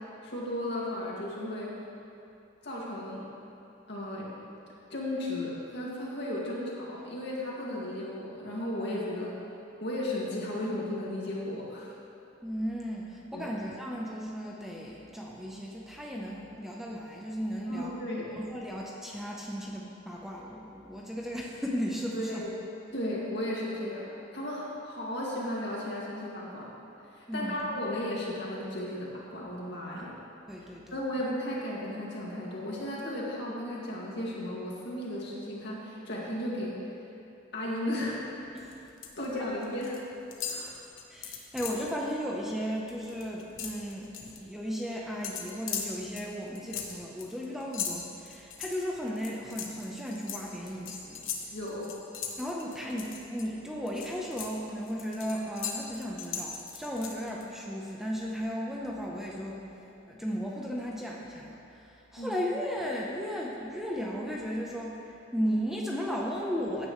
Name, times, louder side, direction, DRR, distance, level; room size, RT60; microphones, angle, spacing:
voice 1, 0.2-1.7 2.6-3.2 3.9-4.4 4.9-9.3 9.8-11.9 13.3-13.5 17.7-18.4 22.1-22.5 22.9-26.7 27.1-30.1 30.9-36.8 37.5-38.5 39.2-40.0 40.4-40.8 51.5-51.9 62.2-62.4, left 1 dB, 60° left, -5 dB, 2.3 m, -35 dB
voice 2, 12.4-17.9 18.4-22.4 27.3-27.6 29.9-30.0 30.5-31.0 38.5-38.7 39.2-39.3 41.1-51.3 52.4-59.6 60.1-65.0 65.3-66.9, equal, ahead, -3 dB, 0.9 m, -35 dB
sound 1, 38.6-39.2 39.5-40.0 40.3-41.9 42.3-42.5 42.8-44.4 45.2-53.4 53.9-57.4, left 7 dB, 90° left, 1.2 m, -39 dB
15.5 x 9.8 x 3.2 m, 2.9 s
head